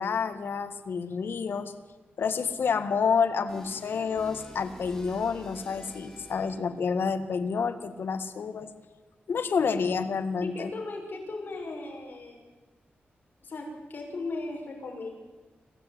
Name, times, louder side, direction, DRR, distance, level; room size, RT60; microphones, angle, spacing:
voice 1, 0.0-1.7 2.2-8.7 9.3-10.7, left 5 dB, 75° left, 8 dB, 1.8 m, -29 dB
sound 1, 3.5-6.9, left 1 dB, 10° left, 4.2 m, -47 dB
voice 2, 10.4-12.4 13.4-15.1, left 3 dB, 55° left, 1 dB, 6.6 m, -37 dB
26.0 x 15.5 x 9.5 m, 1.3 s
wide cardioid pair, 145°, 4 cm